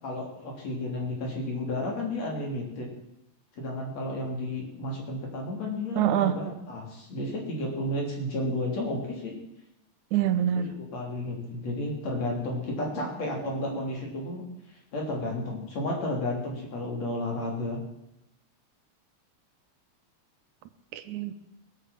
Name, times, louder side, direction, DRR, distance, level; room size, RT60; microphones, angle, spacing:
voice 1, 0.0-2.9 3.5-9.3 10.6-14.4 14.9-17.8, left 1 dB, 65° left, 0 dB, 4.5 m, -32 dB
voice 2, 6.0-6.4 10.1-10.7 13.7-13.8 20.9-21.3, right 10 dB, 85° right, 10 dB, 2.4 m, -25 dB
19.5 x 8.1 x 7.5 m, 0.83 s
omnidirectional pair, 3.3 m